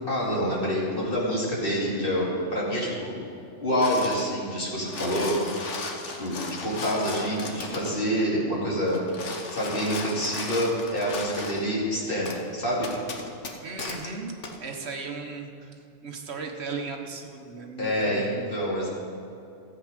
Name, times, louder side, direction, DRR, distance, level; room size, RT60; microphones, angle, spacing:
voice 1, 0.1-3.1 3.6-5.4 6.2-9.0 9.5-12.9 17.8-18.9, equal, 45° left, -5 dB, 2.8 m, -27 dB
sound 1, 3.8-4.3 4.7-8.0 8.9-11.7 12.3-12.4 12.8-14.1 14.4-14.6, left 3 dB, 70° left, 1.4 m, -36 dB
voice 2, 13.6-15.8 16.0-18.5, right 4 dB, 60° right, 2 dB, 1.3 m, -37 dB
14.5 x 8.1 x 5.1 m, 2.7 s
omnidirectional pair, 1.3 m